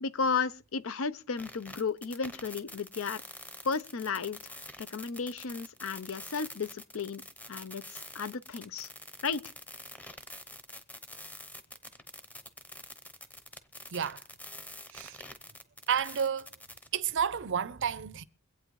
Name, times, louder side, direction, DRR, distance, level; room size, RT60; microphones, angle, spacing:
voice 1, 0.0-3.2 3.6-4.5 4.8-7.2 7.5-8.9 9.2-9.4, left 5 dB, 70° left, 0.6 m, -34 dB
sound 1, 1.4-16.9, left 1 dB, 10° left, 0.8 m, -46 dB
voice 2, 15.9-16.5 16.9-18.2, right 7 dB, 60° right, 0.6 m, -30 dB
24.0 x 8.6 x 3.1 m
head